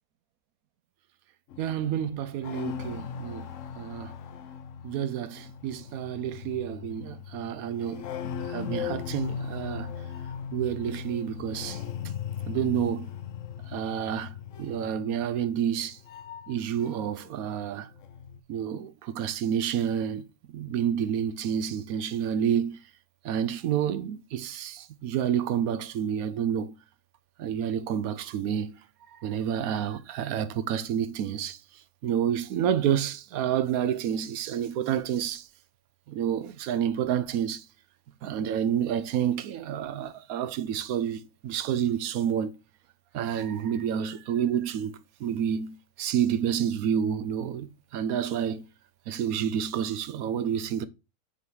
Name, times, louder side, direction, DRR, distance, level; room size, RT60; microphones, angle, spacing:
sound 1, 1.5-17.3 17.6-18.4, left 8 dB, 70° left, 1.0 m, -38 dB
voice 1, 1.6-3.5 3.8-4.1 4.8-8.1 8.5-9.9 10.5-11.8 12.5-13.1 13.7-16.0 16.5-17.9 18.5-20.2 20.5-22.8 23.2-26.7 27.4-28.8 29.2-31.6 32.0-35.5 36.1-37.6 38.2-42.5 43.1-47.7 47.9-48.6 49.1-50.9, right 9 dB, 90° right, 1.1 m, -29 dB
5.7 x 4.1 x 4.6 m
omnidirectional pair, 1.4 m